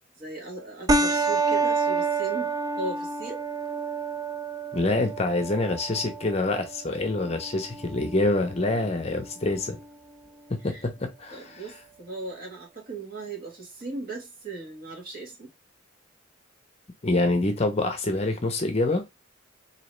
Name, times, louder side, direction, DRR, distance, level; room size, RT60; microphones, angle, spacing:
voice 1, 0.2-3.4 10.6-10.8 11.3-15.5, right 3 dB, 45° right, 1.5 m, -37 dB
sound 1, 0.9-9.9, right 3 dB, 20° right, 0.4 m, -29 dB
voice 2, 4.7-9.8 10.5-11.4 17.0-19.0, left 2 dB, 30° left, 0.6 m, -26 dB
4.0 x 2.8 x 3.1 m
head